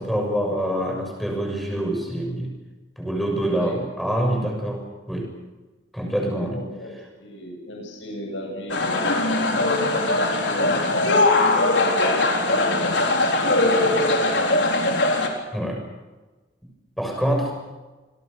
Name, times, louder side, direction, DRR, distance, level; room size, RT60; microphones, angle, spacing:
voice 1, 0.0-2.6 3.0-5.3 5.9-6.6 15.5-15.8 17.0-17.5, right 1 dB, ahead, 2 dB, 6.5 m, -25 dB
voice 2, 6.2-6.9 7.2-9.4 10.4-15.3, left 1 dB, 90° left, 2 dB, 8.0 m, -35 dB
sound 1, 8.7-15.3, left 2 dB, 70° left, 4.1 m, -20 dB
28.0 x 21.5 x 6.8 m, 1.2 s
head